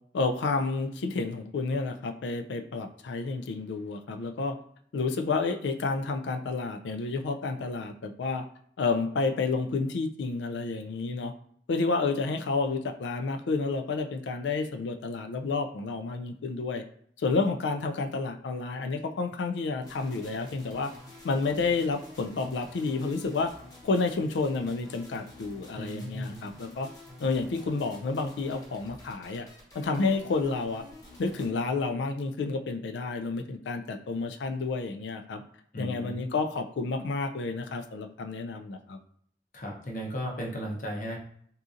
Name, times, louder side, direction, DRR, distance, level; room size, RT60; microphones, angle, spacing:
voice 1, 0.1-4.6 4.9-8.4 8.8-11.3 11.7-16.8 17.2-20.9 21.2-23.5 23.8-26.9 27.2-29.5 29.7-30.8 31.2-35.4 35.8-39.0, left 3 dB, 80° left, 6 dB, 0.4 m, -30 dB
sound 1, 19.8-31.5, left 2 dB, 20° left, 0.9 m, -49 dB
voice 2, 25.8-26.4 35.7-36.3 39.5-41.2, equal, 50° left, 0 dB, 0.7 m, -35 dB
3.7 x 2.7 x 2.5 m, 0.63 s
head